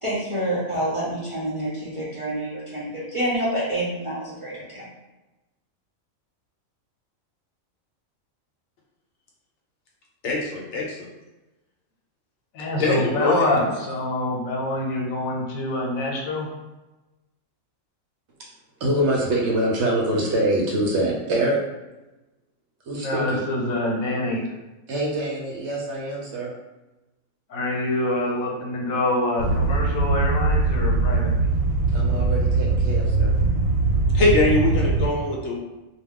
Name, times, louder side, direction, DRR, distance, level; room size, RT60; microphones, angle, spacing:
voice 1, 0.0-4.6, right 1 dB, 30° right, -9 dB, 0.6 m, -27 dB
voice 2, 10.2-11.1 12.8-13.5 34.1-35.7, left 2 dB, 65° left, -2 dB, 0.9 m, -22 dB
voice 3, 12.5-16.5 23.0-24.4 27.5-31.3, left 1 dB, 85° left, -1 dB, 1.1 m, -26 dB
voice 4, 18.8-21.6 22.9-23.4 24.9-26.5 31.9-33.3, right 1 dB, 65° right, -2 dB, 0.8 m, -24 dB
sound 1, 29.4-35.1, right 3 dB, 85° right, 1.1 m, -21 dB
2.3 x 2.3 x 3.5 m, 1.1 s
omnidirectional pair, 1.4 m